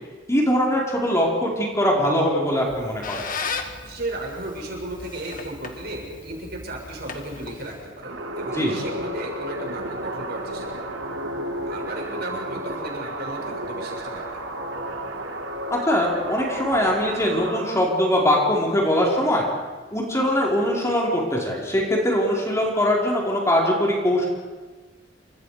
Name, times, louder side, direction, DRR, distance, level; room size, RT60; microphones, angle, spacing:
voice 1, 0.3-3.3 8.5-8.8 15.7-19.4 19.9-24.3, equal, 15° left, -2 dB, 4.7 m, -22 dB
Squeak, 2.5-8.0, left 5 dB, 45° left, 2.1 m, -36 dB
voice 2, 3.8-10.9 11.5-14.4, right 1 dB, 55° right, -1 dB, 7.3 m, -34 dB
sound 1, 8.0-17.8, right 1 dB, 85° right, 3.1 m, -32 dB
30.0 x 26.0 x 5.1 m, 1.4 s
head